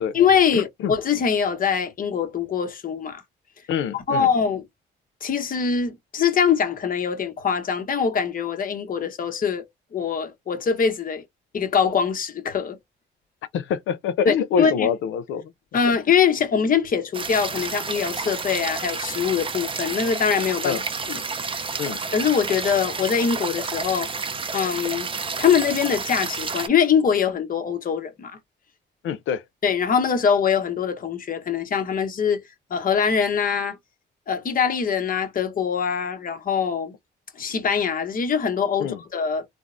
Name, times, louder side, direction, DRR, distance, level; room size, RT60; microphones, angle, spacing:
voice 1, 0.0-3.2 3.9-4.6 5.2-11.2 11.5-12.8 14.2-14.9 15.7-20.8 21.1-21.2 22.1-24.1 24.5-25.1 25.4-28.4 29.6-32.4 32.7-33.8 34.3-36.9 37.4-39.5, left 7 dB, 45° left, 0.9 m, -23 dB
voice 2, 0.5-0.9 3.7-4.3 13.5-15.5 20.6-20.8 21.8-22.1 29.0-29.4 38.8-39.0, left 7 dB, 75° left, 0.5 m, -25 dB
sound 1, 17.1-26.7, right 5 dB, 25° right, 0.5 m, -30 dB
3.4 x 2.0 x 2.4 m
cardioid pair, 90°, 20 cm